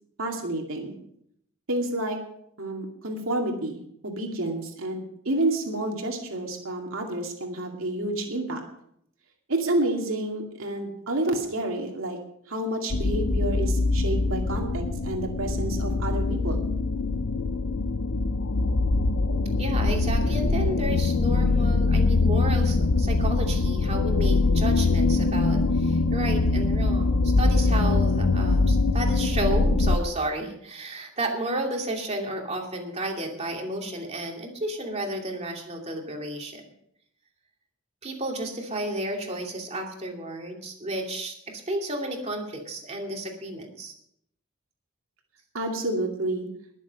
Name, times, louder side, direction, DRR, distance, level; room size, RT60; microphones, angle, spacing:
voice 1, 0.2-0.9 1.7-2.2 2.6-8.6 9.5-12.2 12.5-16.7 45.5-46.5, right 1 dB, 90° right, 1 dB, 2.3 m, -29 dB
sound 1, 12.9-30.0, left 3 dB, 70° left, 0.7 m, -23 dB
voice 2, 19.6-36.6 38.0-43.9, right 1 dB, 35° right, 1 dB, 2.6 m, -32 dB
21.0 x 7.3 x 5.3 m, 0.71 s
head